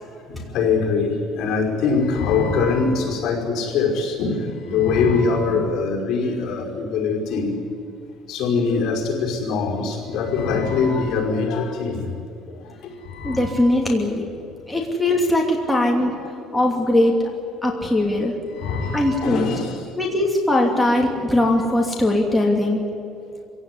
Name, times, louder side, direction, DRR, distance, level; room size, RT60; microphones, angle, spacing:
voice 1, 0.5-7.5 8.3-12.1 13.0-13.5 16.7-16.8 18.6-19.8, left 4 dB, 60° left, 0 dB, 5.3 m, -22 dB
voice 2, 13.2-14.3 14.7-16.2 16.5-17.3 17.6-18.4 18.9-19.6 20.0-22.8, left 1 dB, 5° left, -1 dB, 2.7 m, -20 dB
25.5 x 17.0 x 9.8 m, 2.6 s
cardioid pair, 145°, 0 cm